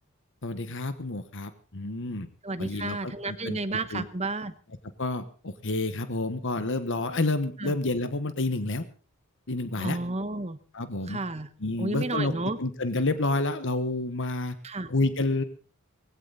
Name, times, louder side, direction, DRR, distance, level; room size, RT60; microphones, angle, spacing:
voice 1, 0.4-2.3 2.6-3.6 3.9-4.0 5.0-8.8 9.5-10.0 10.7-11.2 11.6-14.5 14.9-15.4, left 2 dB, 55° left, 11 dB, 1.4 m, -29 dB
voice 2, 2.4-4.5 7.6-7.7 9.8-10.6 11.1-11.5 11.8-12.6 14.6-14.9, right 2 dB, 30° right, 11 dB, 1.2 m, -31 dB
19.0 x 16.5 x 4.1 m, 0.38 s
head